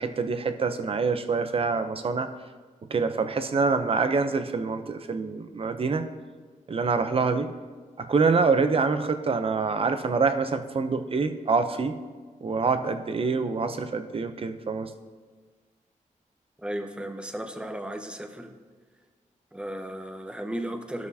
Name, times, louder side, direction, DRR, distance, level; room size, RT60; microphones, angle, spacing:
voice 1, 0.0-2.3 2.9-6.1 6.7-7.5 8.0-12.0 12.4-14.9, right 4 dB, 45° right, 8 dB, 0.6 m, -26 dB
voice 2, 16.6-18.5 19.5-21.1, right 1 dB, 5° right, 5 dB, 0.8 m, -35 dB
15.0 x 6.2 x 2.8 m, 1.5 s
wide cardioid pair, 105°, 14 cm